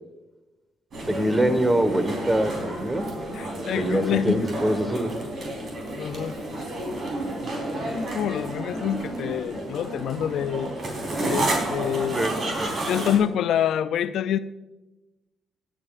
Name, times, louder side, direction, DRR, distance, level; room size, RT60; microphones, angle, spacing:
sound 1, 0.9-13.2, right 1 dB, 55° right, 3.9 m, -31 dB
voice 1, 1.1-3.0 3.7-5.1 12.1-12.7, right 1 dB, 15° right, 1.3 m, -24 dB
voice 2, 3.3-4.4 6.0-6.4 8.1-10.7 11.3-12.2 12.9-14.4, left 9 dB, 75° left, 0.3 m, -26 dB
20.5 x 8.9 x 2.5 m
cardioid pair, 90°, 0 cm